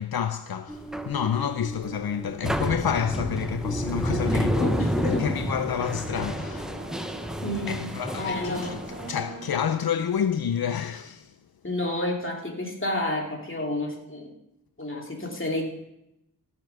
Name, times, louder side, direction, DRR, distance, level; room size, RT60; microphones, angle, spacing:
voice 1, 0.0-6.8 7.7-8.8 9.1-11.4, left 8 dB, 80° left, 0.6 m, -29 dB
sound 1, 0.7-9.1, equal, ahead, 0.8 m, -30 dB
voice 2, 4.2-5.3 7.4-8.8 11.6-14.3 14.8-15.6, left 1 dB, 35° left, 2.7 m, -30 dB
sound 2, 4.2-9.8, right 1 dB, 30° right, 3.0 m, -42 dB
15.0 x 7.0 x 6.0 m
wide cardioid pair, 80°, 36 cm